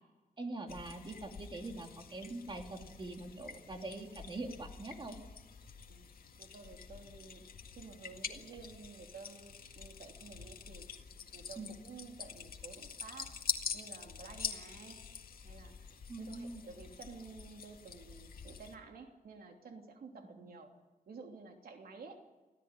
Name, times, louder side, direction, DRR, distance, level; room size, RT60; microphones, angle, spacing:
voice 1, 0.4-5.2 11.6-11.7 16.1-16.6 20.3-20.5, right 2 dB, 30° right, 3 dB, 2.8 m, -43 dB
sound 1, 0.7-18.8, left 6 dB, 80° left, 1.9 m, -46 dB
voice 2, 6.4-7.5 7.8-10.9 11.3-13.4 13.7-15.0 15.4-15.8 16.2-20.7 21.1-22.3, right 4 dB, 85° right, 3 dB, 3.1 m, -52 dB
25.0 x 16.0 x 9.9 m, 1.2 s
wide cardioid pair, 160°, 15 cm